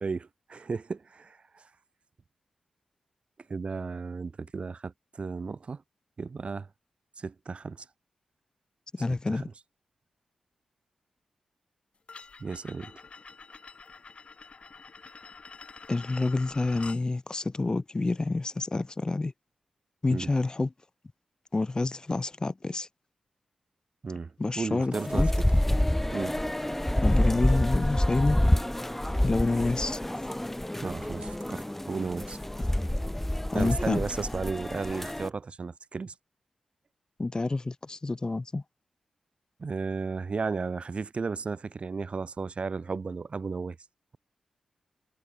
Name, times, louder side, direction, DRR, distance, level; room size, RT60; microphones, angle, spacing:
voice 1, 0.0-1.6 3.5-5.8 6.2-6.7 7.2-7.9 9.3-9.5 12.4-12.9 20.1-20.3 24.0-25.5 26.1-26.4 30.8-32.4 33.5-36.1 39.6-43.8, right 4 dB, 50° right, 2.0 m, -34 dB
voice 2, 8.9-9.5 15.9-19.3 20.0-20.7 21.5-22.9 24.4-25.3 27.0-28.4 29.2-30.0 33.5-34.0 37.2-38.6, left 3 dB, 35° left, 2.0 m, -28 dB
sound 1, 12.1-17.0, left 4 dB, 50° left, 1.6 m, -47 dB
sound 2, 24.9-35.3, left 1 dB, 10° left, 1.1 m, -27 dB
cardioid pair, 50°, 2 cm